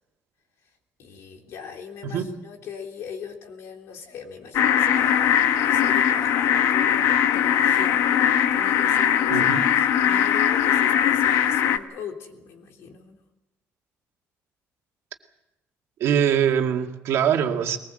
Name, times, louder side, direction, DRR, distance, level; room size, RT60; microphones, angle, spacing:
voice 1, 1.0-8.2 8.5-13.2, left 6 dB, 65° left, 3.4 m, -39 dB
voice 2, 2.0-2.3 9.3-9.6 16.0-17.8, right 8 dB, 65° right, 2.1 m, -23 dB
sound 1, 4.5-11.8, left 9 dB, 80° left, 1.2 m, -20 dB
21.5 x 20.0 x 7.8 m
cardioid pair, 175°, 5 cm